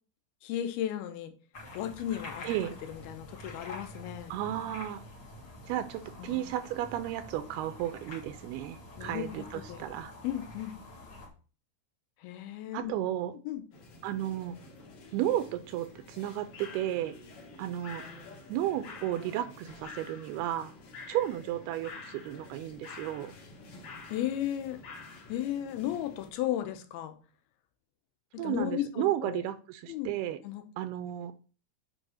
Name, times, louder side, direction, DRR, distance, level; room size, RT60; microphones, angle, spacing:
voice 1, 0.4-1.3 1.7-2.5 2.9-4.3 6.2-6.4 9.0-9.8 10.2-10.7 12.2-12.9 13.5-13.6 24.1-24.8 25.3-27.2 28.4-29.4 29.9-30.1 30.4-30.6, left 11 dB, 75° left, 8 dB, 2.7 m, -35 dB
sound 1, 1.5-11.3, left 1 dB, 40° left, 1.8 m, -47 dB
voice 2, 4.3-5.0 5.7-10.1 12.7-13.3 14.0-14.6 15.1-17.2 17.6-18.0 18.5-20.7 21.1-23.3 28.4-30.4 30.8-31.3, right 12 dB, 85° right, 11 dB, 2.5 m, -33 dB
sound 2, 13.7-26.3, left 3 dB, 55° left, 2.3 m, -49 dB
6.5 x 5.3 x 6.4 m, 0.38 s
omnidirectional pair, 4.7 m